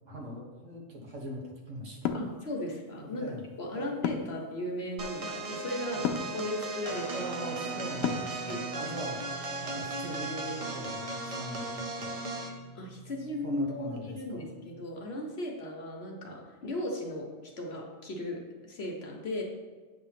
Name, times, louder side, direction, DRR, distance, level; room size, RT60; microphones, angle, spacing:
voice 1, 0.1-2.1 3.0-3.4 3.7-3.9 5.9-6.1 7.0-11.7 11.9-12.1 13.4-14.5, equal, 70° right, -3 dB, 1.7 m, -41 dB
sound 1, 2.0-2.3 4.0-4.4 6.0-6.3 8.0-8.4, left 8 dB, 85° left, 1.0 m, -30 dB
voice 2, 2.1-6.0 6.3-7.3 8.5-8.9 12.7-17.3 17.6-19.4, left 1 dB, 55° left, 0 dB, 1.2 m, -36 dB
sound 2, 5.0-12.6, right 3 dB, 40° right, 0.5 m, -37 dB
Guitar, 6.9-15.0, left 1 dB, 35° left, 1.4 m, -47 dB
8.3 x 3.1 x 5.7 m, 1.4 s
omnidirectional pair, 1.4 m